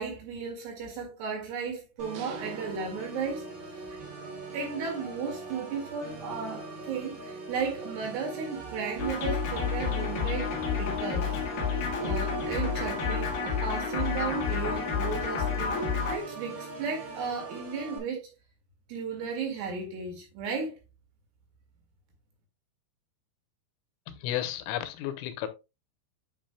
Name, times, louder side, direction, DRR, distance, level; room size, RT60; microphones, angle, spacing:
voice 1, 0.0-3.4 3.9-4.0 4.5-11.3 12.0-15.8 16.1-18.3 18.9-20.8, right 5 dB, 65° right, 3.6 m, -35 dB
Organ, 2.0-18.0, right 3 dB, 45° right, 1.8 m, -42 dB
sound 1, 2.1-4.0, right 10 dB, 90° right, 3.4 m, -47 dB
sound 2, 9.0-16.1, left 5 dB, 55° left, 2.8 m, -30 dB
voice 2, 24.1-25.5, left 12 dB, 90° left, 3.3 m, -33 dB
10.5 x 5.4 x 2.2 m
omnidirectional pair, 5.8 m